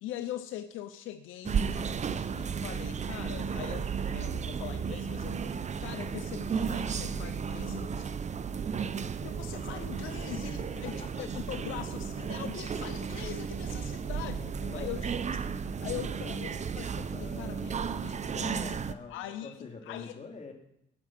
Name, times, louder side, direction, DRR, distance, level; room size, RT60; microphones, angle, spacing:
voice 1, 0.0-8.1 9.2-14.4 14.7-15.1 15.5-15.6 15.8-17.7 18.0-18.6 19.1-20.1, left 12 dB, 90° left, 11 dB, 0.6 m, -42 dB
sound 1, 1.4-18.9, right 6 dB, 35° right, 0.6 m, -34 dB
voice 2, 10.7-11.4 13.9-15.2 15.9-16.0 17.1-20.5, left 4 dB, 35° left, 2 dB, 2.5 m, -47 dB
17.5 x 6.1 x 5.9 m, 0.78 s
cardioid pair, 90°, 20 cm